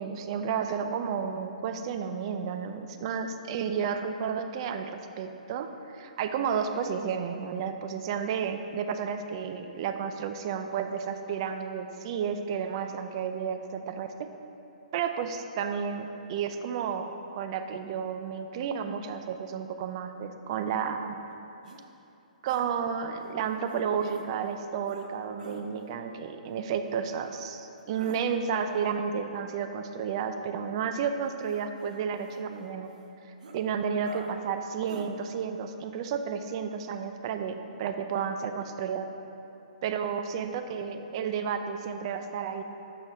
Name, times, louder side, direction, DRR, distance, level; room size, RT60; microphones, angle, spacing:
voice 1, 0.0-14.1 14.9-21.1 22.4-32.9 33.5-39.1 39.8-42.6, right 7 dB, 40° right, 7 dB, 0.5 m, -32 dB
sound 1, 21.6-21.8 22.5-22.7 23.7-24.3 24.9-25.1 25.4-25.6 27.8-28.2 31.2-32.6 32.9-33.0 33.4-33.6 34.0-34.3 34.9-35.1, right 3 dB, 70° right, 0.8 m, -47 dB
6.1 x 5.9 x 5.3 m, 2.8 s
hypercardioid pair, 150°, 4 cm